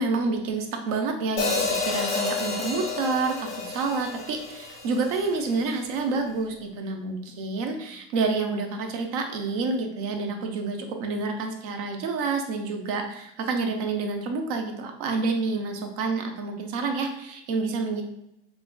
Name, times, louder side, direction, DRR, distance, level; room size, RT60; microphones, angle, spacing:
voice 1, 0.0-18.0, right 4 dB, 40° right, 4 dB, 0.5 m, -28 dB
Hi-hat, 1.4-5.6, left 4 dB, 20° left, 0.7 m, -30 dB
5.6 x 2.6 x 2.2 m, 0.83 s
supercardioid pair, 160°, 31 cm